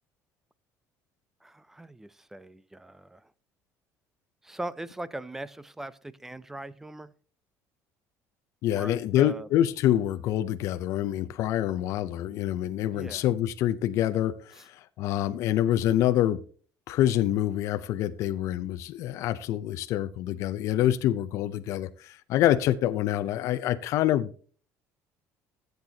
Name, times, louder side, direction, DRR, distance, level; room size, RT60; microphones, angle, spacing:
voice 1, 1.4-3.3 4.4-7.1 8.7-9.5 12.9-13.3 14.5-14.6, right 1 dB, 5° right, 0.4 m, -40 dB
voice 2, 8.6-16.4 16.9-24.5, left 12 dB, 50° left, 0.5 m, -26 dB
14.5 x 8.0 x 2.8 m
cardioid pair, 170°, 6 cm